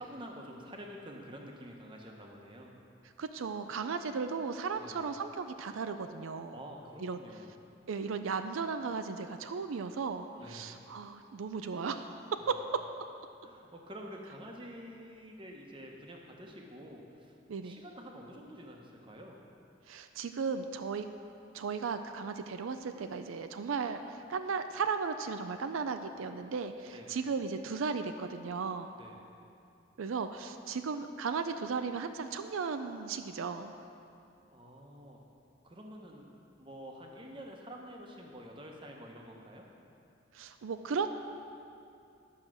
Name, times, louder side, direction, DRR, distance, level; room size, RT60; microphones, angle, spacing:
voice 1, 0.0-2.7 4.8-5.0 6.5-7.5 10.4-10.7 12.4-12.5 13.4-17.4 17.6-19.4 26.9-27.1 28.9-29.2 34.5-35.2 35.6-36.3 36.6-39.7, equal, 25° right, 0 dB, 1.0 m, -48 dB
voice 2, 3.2-6.6 7.0-7.2 7.9-12.1 12.5-12.6 17.5-17.8 19.9-21.1 21.5-28.9 30.0-33.7 40.3-41.1, right 5 dB, 90° right, 8 dB, 0.4 m, -36 dB
11.0 x 6.4 x 6.3 m, 2.6 s
head